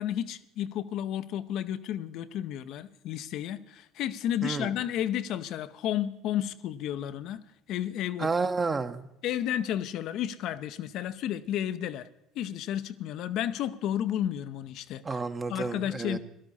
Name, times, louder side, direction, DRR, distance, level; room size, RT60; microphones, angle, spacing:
voice 1, 0.0-7.4 7.7-8.3 9.2-12.1 12.4-15.2 15.5-16.2, left 11 dB, 60° left, 12 dB, 0.7 m, -32 dB
voice 2, 8.2-9.1 15.0-16.2, right 4 dB, 30° right, 8 dB, 1.2 m, -30 dB
17.5 x 12.5 x 4.2 m, 0.81 s
hypercardioid pair, 60°, 0 cm